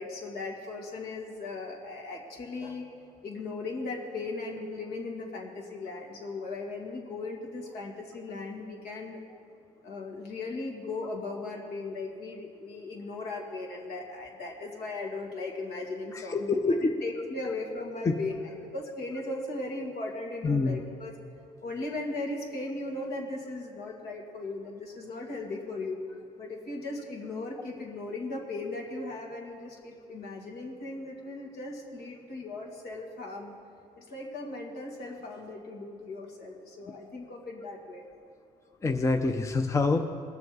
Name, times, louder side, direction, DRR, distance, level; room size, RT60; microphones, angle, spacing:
voice 1, 0.0-2.9 3.2-9.2 9.8-21.1 21.6-26.0 26.4-33.6 34.0-38.0, left 2 dB, 70° left, 0 dB, 2.3 m, -37 dB
voice 2, 16.1-16.9 18.1-18.2 20.4-20.8 38.8-40.0, left 3 dB, 15° left, 6 dB, 0.6 m, -26 dB
20.5 x 7.0 x 4.8 m, 2.3 s
cardioid pair, 110°, 17 cm